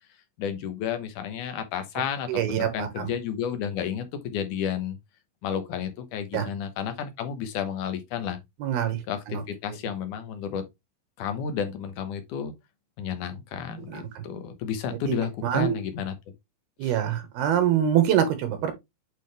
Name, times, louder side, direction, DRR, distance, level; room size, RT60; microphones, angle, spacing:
voice 1, 0.4-5.0 5.4-8.4 9.1-10.6 11.2-12.5 13.0-16.2 16.8-17.0, left 8 dB, 65° left, 2.2 m, -32 dB
voice 2, 2.3-3.1 6.3-6.5 8.6-9.0 9.3-9.4 13.9-14.2 15.4-15.8 16.8-18.7, right 10 dB, 80° right, 3.3 m, -24 dB
8.6 x 3.8 x 3.3 m
omnidirectional pair, 4.4 m